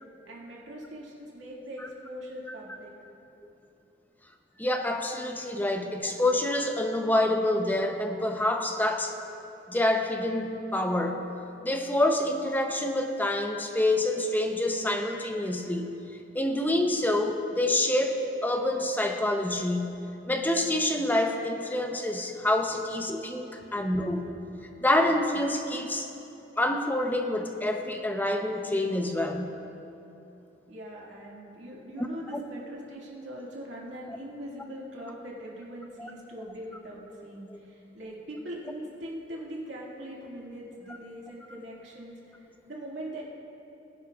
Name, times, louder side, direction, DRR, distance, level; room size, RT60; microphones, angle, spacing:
voice 1, 0.3-2.9 30.7-42.2 42.6-43.2, equal, 80° right, -4 dB, 2.1 m, -41 dB
voice 2, 4.6-9.2 9.7-11.3 11.6-16.0 16.3-24.3 24.8-26.1 26.6-29.6 32.0-32.1 32.3-32.4 36.0-36.1, left 1 dB, 10° left, 4 dB, 0.7 m, -27 dB
21.0 x 10.5 x 2.4 m, 2.8 s
head